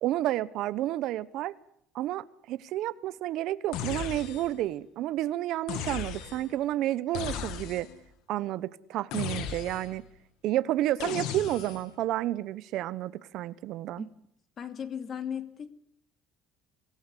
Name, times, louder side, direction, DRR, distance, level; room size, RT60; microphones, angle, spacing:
voice 1, 0.0-1.5 1.9-7.9 8.3-10.0 10.4-14.0, right 14 dB, 60° right, 17 dB, 1.0 m, -30 dB
sound 1, 3.7-4.6 5.7-6.5 7.1-8.0 9.1-10.0 11.0-11.9, left 7 dB, 70° left, 2.7 m, -36 dB
voice 2, 14.6-15.7, left 8 dB, 35° left, 10 dB, 2.6 m, -36 dB
25.5 x 17.5 x 10.0 m, 0.67 s
cardioid pair, 160°, 0 cm